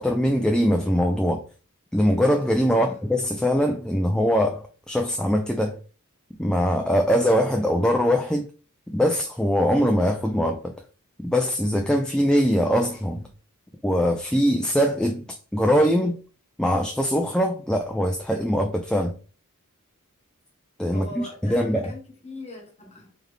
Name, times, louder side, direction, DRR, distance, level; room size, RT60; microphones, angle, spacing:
voice 1, 0.0-1.4 1.9-5.8 6.4-8.5 8.9-10.7 11.2-13.3 13.8-15.2 15.5-16.2 16.6-19.1 20.8-21.9, equal, 5° left, 0.3 m, -22 dB
voice 2, 20.9-23.1, left 2 dB, 30° left, 1.1 m, -41 dB
3.6 x 3.4 x 3.1 m
head